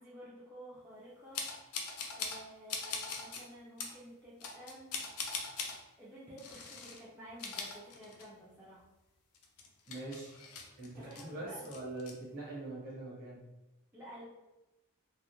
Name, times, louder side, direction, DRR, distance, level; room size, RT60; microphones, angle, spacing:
voice 1, 0.0-1.7 2.1-4.9 6.0-8.8 10.9-11.7 13.9-14.2, equal, 10° right, -9 dB, 0.4 m, -52 dB
sound 1, 1.3-2.4 2.7-3.4 3.8-4.0 4.4-5.8 6.4-7.0 7.3-8.5 8.8-8.9 9.3-11.2 11.6-12.1, left 5 dB, 70° left, 0.4 m, -41 dB
voice 2, 9.9-10.4 10.8-13.4, right 2 dB, 40° right, -6 dB, 1.0 m, -43 dB
2.3 x 2.1 x 2.9 m, 1.0 s
head